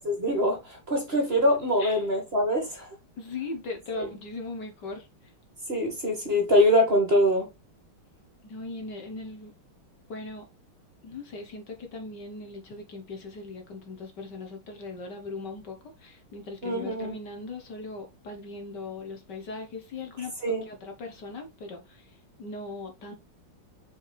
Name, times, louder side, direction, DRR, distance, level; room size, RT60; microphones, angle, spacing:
voice 1, 0.1-2.9 3.9-4.1 5.7-7.5 16.6-17.2 20.4-20.6, equal, 30° right, 2.0 m, -24 dB
voice 2, 3.2-5.3 8.4-9.5 10.1-10.5 11.0-23.1, left 3 dB, 60° left, 1.8 m, -39 dB
6.4 x 4.9 x 3.4 m
omnidirectional pair, 2.3 m